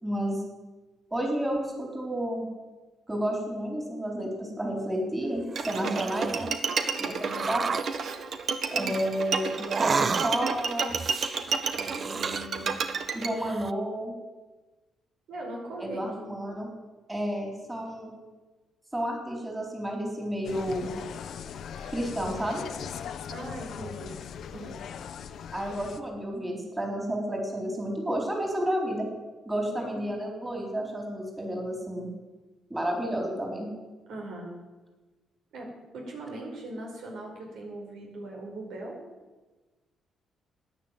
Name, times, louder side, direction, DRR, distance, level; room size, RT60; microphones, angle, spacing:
voice 1, 0.0-0.4 1.1-2.5 3.1-6.5 7.0-7.6 8.7-9.5 9.8-11.0 11.7-12.7 13.1-14.1 15.8-16.7 17.1-18.1 18.9-20.9 21.9-22.7 25.5-29.1 29.5-32.1 32.7-33.7, equal, 15° right, 1 dB, 4.2 m, -31 dB
sound 1, 5.4-6.6 7.2-7.9 9.6-10.6 10.9-12.8 13.2-13.7, right 5 dB, 35° right, 0.4 m, -32 dB
Bowed string instrument, 5.6-13.3, right 5 dB, 60° right, 1.6 m, -31 dB
voice 2, 15.3-16.0 23.3-24.1 24.5-24.7 29.6-30.2 34.1-34.5 35.5-39.0, right 2 dB, 75° right, 0 dB, 4.9 m, -39 dB
Insect, 20.4-26.0, left 8 dB, 65° left, 1.0 m, -39 dB
13.0 x 10.5 x 9.3 m, 1.2 s
cardioid pair, 90°, 0 cm